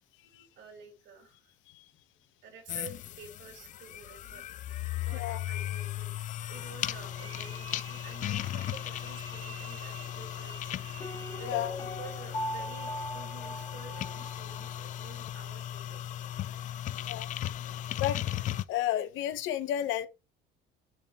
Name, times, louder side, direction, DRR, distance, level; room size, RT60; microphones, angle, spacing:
voice 1, 0.6-1.5 2.4-4.5 5.0-16.0, right 5 dB, 60° right, 3.6 m, -50 dB
sound 1, 2.7-18.6, left 12 dB, 40° left, 0.4 m, -37 dB
sound 2, 7.1-11.8, right 6 dB, 25° right, 0.8 m, -50 dB
Piano, 11.0-14.8 15.0-15.1, left 1 dB, 20° left, 1.7 m, -39 dB
voice 2, 11.4-11.7 17.0-17.3 18.0-18.2 18.7-20.1, left 12 dB, 65° left, 1.1 m, -31 dB
10.5 x 3.6 x 2.9 m
cardioid pair, 160°, 21 cm